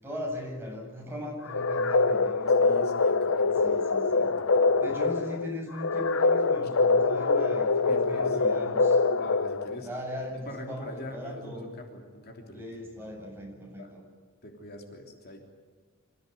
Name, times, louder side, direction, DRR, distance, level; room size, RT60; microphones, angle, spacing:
voice 1, 0.0-2.8 3.6-4.3 4.8-9.0 9.8-11.6 12.5-14.0, left 1 dB, 10° right, -1 dB, 7.7 m, -39 dB
sound 1, 1.5-9.9, left 3 dB, 80° left, 0.7 m, -24 dB
voice 2, 2.6-3.8 4.1-5.0 7.8-8.4 9.1-9.9 10.5-12.6 13.8-13.9 14.4-15.4, left 1 dB, 50° left, 2 dB, 3.3 m, -43 dB
27.0 x 16.0 x 9.4 m, 1.5 s
head